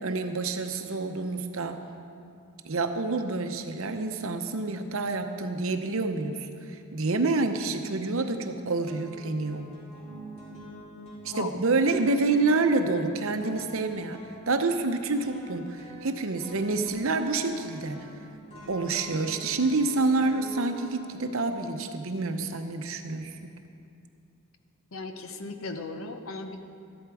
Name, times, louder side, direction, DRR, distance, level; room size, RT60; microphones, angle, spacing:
voice 1, 0.0-1.8 2.6-9.7 11.2-14.2 14.5-18.1 18.7-23.5, right 3 dB, 65° right, 7 dB, 0.8 m, -28 dB
sound 1, 8.1-8.5 8.9-22.3, equal, 30° left, 2.4 m, -47 dB
voice 2, 24.9-26.6, left 3 dB, 65° left, 7 dB, 0.8 m, -36 dB
13.0 x 11.0 x 4.8 m, 2.4 s
head